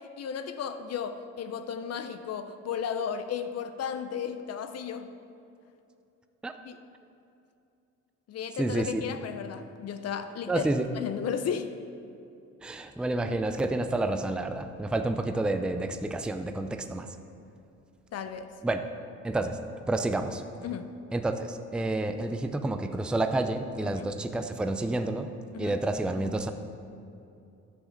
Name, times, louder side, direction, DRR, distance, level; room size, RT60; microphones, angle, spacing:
voice 1, 0.2-5.2 6.6-6.8 8.3-10.7 11.0-11.8 18.1-18.5 20.6-21.0 23.9-24.1 25.5-25.8, left 7 dB, 55° left, 9 dB, 0.6 m, -34 dB
voice 2, 8.6-9.0 10.5-10.9 12.6-17.1 18.6-18.8 19.2-19.6 19.9-20.4 21.1-25.3 25.6-26.5, right 2 dB, 5° right, 7 dB, 0.4 m, -29 dB
10.0 x 6.1 x 5.2 m, 2.6 s
cardioid pair, 90°, 30 cm